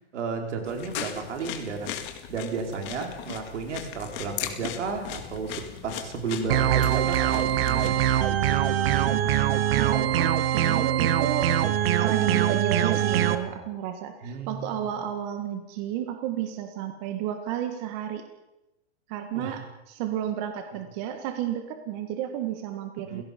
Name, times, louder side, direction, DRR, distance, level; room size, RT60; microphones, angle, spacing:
voice 1, 0.1-2.0 2.3-8.0 14.2-14.9 19.3-19.6 23.1-23.2, right 4 dB, 80° right, 3 dB, 4.6 m, -33 dB
sound 1, 0.6-7.9, left 11 dB, 30° left, 2.1 m, -38 dB
sound 2, 6.5-13.3, right 11 dB, 55° right, 1.6 m, -23 dB
voice 2, 9.1-11.5 12.0-18.2 19.1-19.6 19.9-23.2, right 10 dB, 35° right, 6 dB, 1.8 m, -32 dB
29.5 x 17.0 x 5.3 m, 0.95 s
hypercardioid pair, 155°, 35 cm